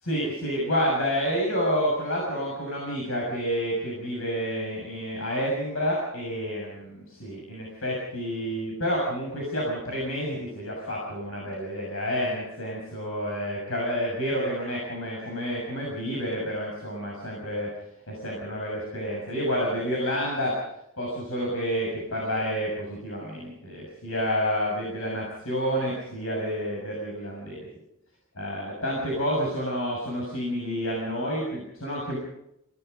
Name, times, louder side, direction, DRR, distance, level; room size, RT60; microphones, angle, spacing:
voice 1, 0.0-17.7 18.1-20.5 21.0-27.7 28.4-32.2, equal, 75° left, -2 dB, 7.0 m, -29 dB
29.0 x 18.0 x 5.4 m, 0.82 s
head